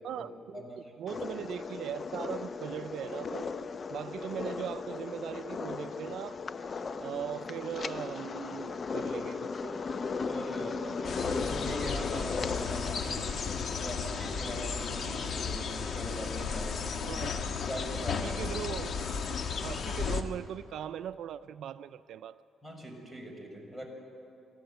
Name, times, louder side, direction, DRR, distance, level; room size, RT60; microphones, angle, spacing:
voice 1, 0.0-0.7 1.0-3.5 3.9-6.4 7.0-9.8 17.1-17.4 18.2-19.1 19.6-22.4, right 9 dB, 75° right, 13 dB, 0.4 m, -39 dB
sound 1, 1.1-13.0, left 4 dB, 40° left, 0.7 m, -37 dB
voice 2, 10.3-13.2 13.7-17.0 17.7-18.4 22.6-23.9, equal, 5° left, 2 dB, 5.2 m, -41 dB
sound 2, 10.9-19.5, left 7 dB, 90° left, 1.1 m, -49 dB
sound 3, 11.0-20.2, left 5 dB, 55° left, 1.3 m, -34 dB
24.5 x 14.5 x 8.0 m, 2.8 s
cardioid pair, 90°, 0 cm